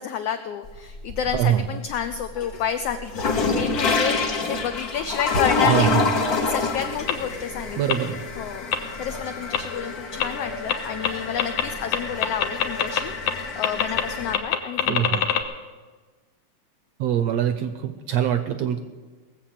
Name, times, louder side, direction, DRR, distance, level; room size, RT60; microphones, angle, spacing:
voice 1, 0.0-5.9 6.4-8.0 8.4-13.1 13.6-15.3, left 8 dB, 85° left, 8 dB, 1.3 m, -30 dB
sound 1, 0.6-1.6 2.0-14.3, left 3 dB, 55° left, 1.0 m, -27 dB
voice 2, 5.7-6.0 7.8-8.2 14.9-15.2 17.0-18.8, right 10 dB, 75° right, 9 dB, 1.6 m, -23 dB
sound 2, 7.1-7.2 7.9-8.0 8.7-8.8 9.5-9.6 10.2-10.3 10.7-10.8 11.0-11.1 11.4-11.6 11.9-13.0 13.3-13.4 13.6-14.0 14.3-15.4, left 10 dB, 70° left, 2.0 m, -22 dB
19.0 x 7.5 x 7.4 m, 1.4 s
omnidirectional pair, 3.5 m